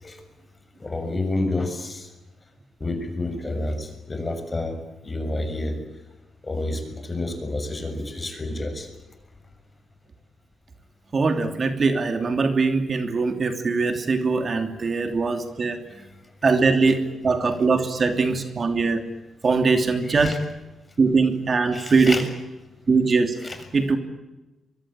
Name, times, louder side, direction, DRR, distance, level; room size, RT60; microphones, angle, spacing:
voice 1, 0.8-2.1 2.8-4.8 5.0-5.8 6.4-8.9 20.1-20.4 21.7-22.2 23.4-23.6, left 2 dB, 25° left, 7 dB, 6.7 m, -29 dB
voice 2, 11.1-15.8 16.4-19.0 19.4-20.4 21.0-22.2 22.9-23.4 23.7-24.0, right 4 dB, 45° right, 7 dB, 3.0 m, -21 dB
24.0 x 23.0 x 8.8 m, 1.1 s
cardioid pair, 80°, 0 cm